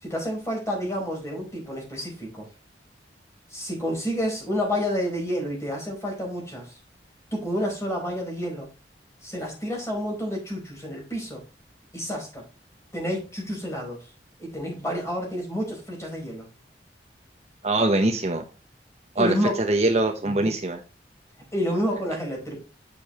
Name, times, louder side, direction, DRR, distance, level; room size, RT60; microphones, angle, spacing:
voice 1, 0.0-2.5 3.5-6.7 7.3-8.7 9.2-11.4 11.9-12.4 12.9-14.1 14.4-16.5 19.2-19.6 20.2-20.5 21.5-22.6, equal, 15° left, -1 dB, 4.5 m, -29 dB
voice 2, 17.6-18.4 19.2-20.8, right 2 dB, 40° right, 5 dB, 1.0 m, -23 dB
9.0 x 6.9 x 3.0 m, 0.32 s
head